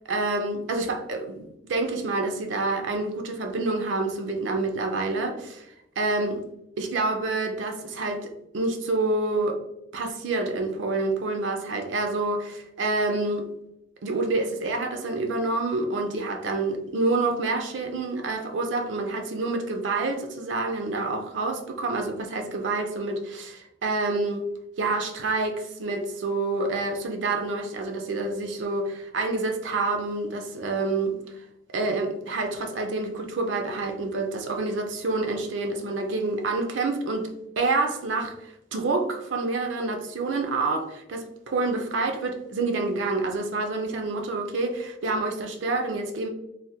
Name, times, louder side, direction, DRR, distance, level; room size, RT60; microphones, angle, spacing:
voice 1, 0.1-5.7 6.0-6.4 6.8-9.6 9.9-13.5 14.0-24.4 24.8-31.2 31.7-37.3 37.6-46.3, right 3 dB, 75° right, 4 dB, 0.4 m, -28 dB
3.3 x 2.1 x 2.7 m, 0.82 s
head